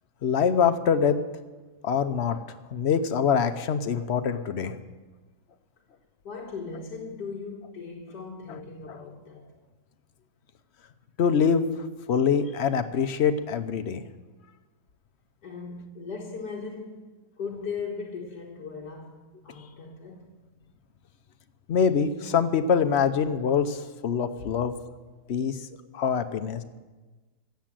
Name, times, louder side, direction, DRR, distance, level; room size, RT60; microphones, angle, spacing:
voice 1, 0.2-1.2 1.8-2.4 2.7-4.8 11.2-11.6 12.1-14.0 21.7-24.7 25.3-25.6 25.9-26.6, left 7 dB, 55° left, 0.8 m, -24 dB
voice 2, 6.2-9.4 15.4-17.0 17.4-20.3 24.4-24.5 25.2-25.3, left 5 dB, 90° left, 2.1 m, -38 dB
16.5 x 7.6 x 7.5 m
omnidirectional pair, 1.8 m